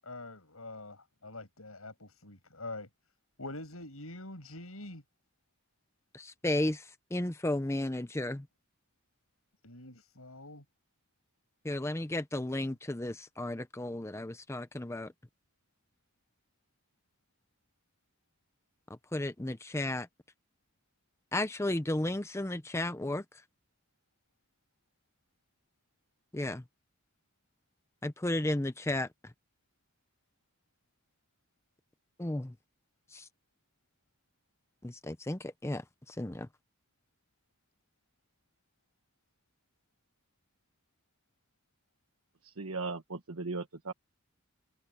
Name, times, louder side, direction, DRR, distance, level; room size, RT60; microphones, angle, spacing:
voice 1, 0.0-2.9 3.4-5.0 9.6-10.6, left 2 dB, 80° left, 7.7 m, -45 dB
voice 2, 6.1-8.5 11.6-15.1 19.1-20.1 21.3-23.2 26.3-26.6 28.0-29.1 32.2-32.5 33.1-33.3 34.8-36.5, left 1 dB, 10° left, 0.6 m, -33 dB
voice 3, 42.4-43.9, right 3 dB, 85° right, 1.3 m, -37 dB
head